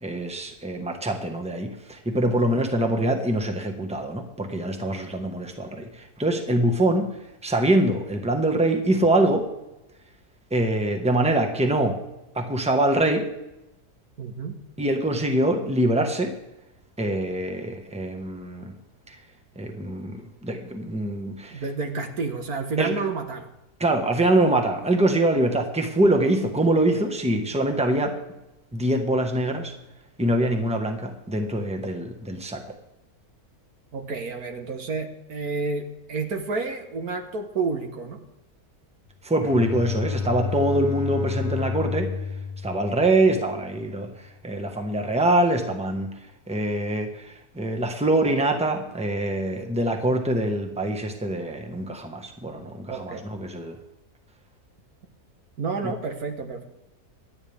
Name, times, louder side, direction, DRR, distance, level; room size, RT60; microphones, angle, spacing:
voice 1, 0.0-7.1 7.4-9.5 10.5-12.0 12.3-13.3 14.8-16.3 17.0-18.7 19.1-19.2 19.5-21.6 22.8-22.9 23.8-28.1 28.7-29.7 30.2-32.7 39.2-42.1 42.6-53.8 55.8-55.9, right 1 dB, 5° right, 4 dB, 1.4 m, -24 dB
voice 2, 2.4-2.7 14.2-14.6 21.5-23.5 33.9-38.2 40.7-40.8 52.9-53.2 55.6-56.6, right 4 dB, 75° right, 5 dB, 1.9 m, -30 dB
Bowed string instrument, 39.4-43.9, left 5 dB, 80° left, 1.8 m, -31 dB
26.0 x 9.5 x 3.6 m, 0.92 s
omnidirectional pair, 1.6 m